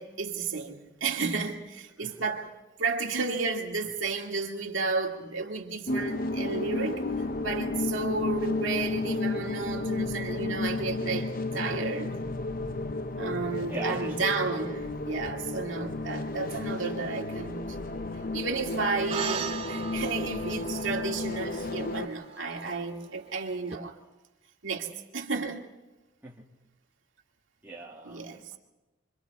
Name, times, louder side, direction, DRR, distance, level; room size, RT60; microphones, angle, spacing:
voice 1, 0.0-2.5 2.8-7.0 7.4-12.2 13.2-17.6 18.3-23.9 24.6-25.7 28.0-28.4, right 4 dB, 75° right, 2.2 m, -32 dB
sound 1, 5.9-22.1, left 2 dB, 45° left, 0.7 m, -32 dB
voice 2, 13.7-14.4 26.2-26.5 27.6-28.6, right 3 dB, 10° right, 2.2 m, -40 dB
sound 2, 19.1-23.8, right 6 dB, 30° right, 0.7 m, -39 dB
29.0 x 24.5 x 4.2 m
head